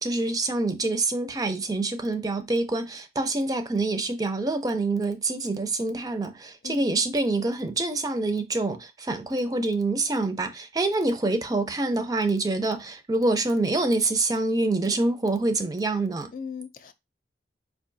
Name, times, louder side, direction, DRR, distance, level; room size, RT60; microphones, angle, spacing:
voice 1, 0.0-16.3, right 2 dB, 20° right, 0.4 m, -26 dB
voice 2, 6.6-7.0 16.3-16.9, left 6 dB, 50° left, 0.3 m, -38 dB
4.6 x 2.3 x 2.6 m
head